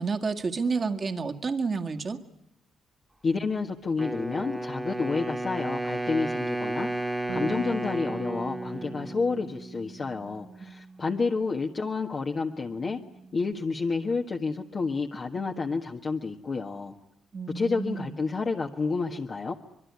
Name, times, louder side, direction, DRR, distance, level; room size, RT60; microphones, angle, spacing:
voice 1, 0.0-2.2 17.3-18.2, right 4 dB, 40° right, 5 dB, 1.9 m, -30 dB
voice 2, 3.2-13.0 13.3-16.9 17.5-19.5, left 4 dB, 40° left, 1 dB, 1.6 m, -30 dB
Wind instrument woodwind instrument, 4.0-9.9, right 1 dB, 10° right, 1.9 m, -33 dB
Bass guitar, 7.3-12.0 12.2-13.5, right 4 dB, 85° right, 2.6 m, -43 dB
25.0 x 22.0 x 9.6 m, 0.77 s
cardioid pair, 90°, 0 cm